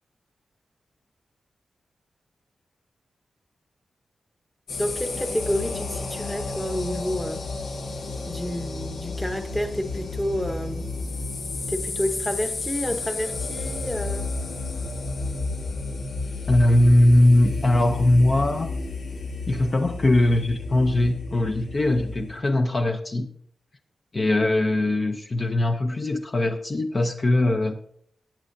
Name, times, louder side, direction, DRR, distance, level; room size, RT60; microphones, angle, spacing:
sound 1, 4.7-22.4, left 3 dB, 90° left, 1.7 m, -32 dB
voice 1, 4.8-7.4 8.3-10.9 11.7-14.3, equal, 5° left, 1.0 m, -29 dB
voice 2, 16.5-18.7 19.5-23.3 24.1-27.8, left 1 dB, 30° left, 0.7 m, -20 dB
18.0 x 8.7 x 2.7 m
wide cardioid pair, 165°, 0 cm